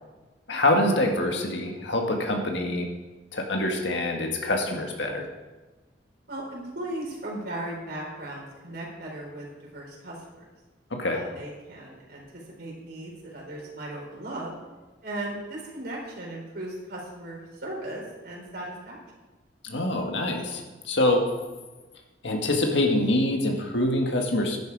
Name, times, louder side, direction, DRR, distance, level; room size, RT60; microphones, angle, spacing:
voice 1, 0.5-2.9 3.3-5.3 10.9-11.2 19.6-21.3 22.2-24.6, left 1 dB, 70° left, 2 dB, 1.8 m, -25 dB
voice 2, 6.3-9.5 9.7-10.4 11.1-14.5 15.0-19.0, right 1 dB, 55° right, -3 dB, 4.3 m, -37 dB
11.5 x 10.5 x 4.9 m, 1.2 s
head